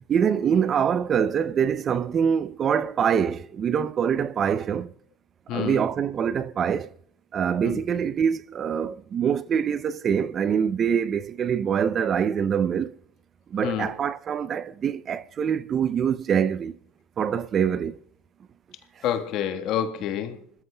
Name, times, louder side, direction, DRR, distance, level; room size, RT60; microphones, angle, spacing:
voice 1, 0.1-4.9 5.5-6.9 7.3-12.9 13.5-16.8 17.2-18.0, right 7 dB, 40° right, 0.5 m, -24 dB
voice 2, 5.5-5.8 7.6-7.8 13.6-13.9 19.0-20.4, left 10 dB, 60° left, 1.4 m, -28 dB
25.5 x 13.5 x 2.2 m
supercardioid pair, 90°, 0 cm